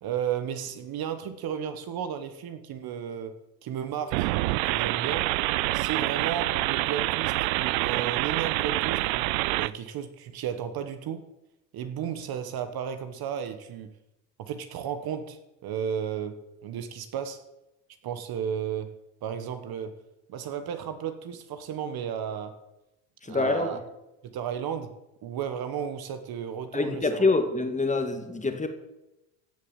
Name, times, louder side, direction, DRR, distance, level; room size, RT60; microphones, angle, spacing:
voice 1, 0.0-5.3 5.7-11.2 11.7-13.9 14.4-17.4 18.0-18.9 19.2-20.0 20.3-22.6 23.3-23.8 24.2-25.0 25.2-27.2, right 8 dB, 45° right, 10 dB, 1.4 m, -34 dB
sound 1, 4.1-9.7, right 19 dB, 85° right, 0.6 m, -27 dB
voice 2, 23.2-23.8 26.7-28.7, left 3 dB, 15° left, 7 dB, 1.9 m, -25 dB
16.0 x 7.1 x 7.2 m, 0.93 s
supercardioid pair, 110°, 49 cm